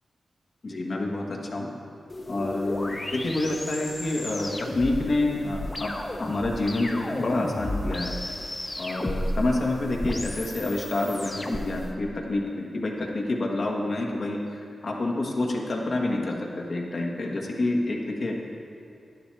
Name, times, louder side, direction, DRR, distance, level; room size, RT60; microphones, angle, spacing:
voice 1, 0.6-1.7 2.3-8.1 8.8-14.6 14.8-18.4, left 2 dB, 60° left, -1 dB, 1.4 m, -28 dB
sound 1, 2.1-11.9, left 1 dB, 25° left, 0.9 m, -34 dB
11.0 x 10.0 x 3.3 m, 2.5 s
cardioid pair, 65°, 0 cm